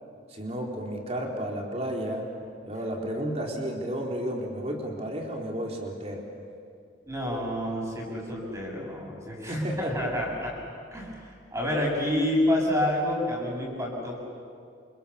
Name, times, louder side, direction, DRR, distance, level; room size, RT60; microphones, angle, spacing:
voice 1, 0.3-2.2 2.6-6.2 9.4-10.1, equal, 35° right, -1 dB, 4.1 m, -32 dB
voice 2, 7.0-10.5 10.9-14.1, left 1 dB, 15° right, -1 dB, 7.4 m, -28 dB
28.5 x 28.0 x 7.2 m, 2.3 s
head